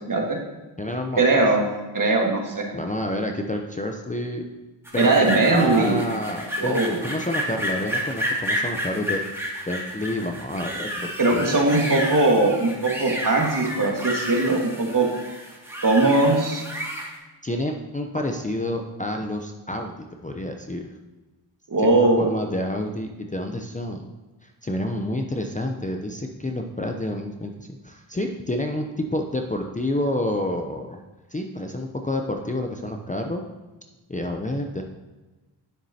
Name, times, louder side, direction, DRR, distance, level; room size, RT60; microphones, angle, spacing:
voice 1, 0.1-0.4 1.2-1.7 1.9-2.6 5.0-6.0 6.6-7.0 11.2-15.1 15.8-16.6 21.7-22.3, right 2 dB, 45° right, 1 dB, 1.8 m, -20 dB
voice 2, 0.8-1.4 2.7-4.4 4.9-9.2 9.7-11.5 17.4-19.9 20.2-20.9 21.8-24.1 24.6-31.0 31.3-33.4 34.1-34.8, left 1 dB, 15° left, 3 dB, 0.7 m, -29 dB
sound 1, 4.9-17.1, equal, 5° right, 2.0 m, -31 dB
9.4 x 7.2 x 2.8 m, 1.1 s
cardioid pair, 65°, 46 cm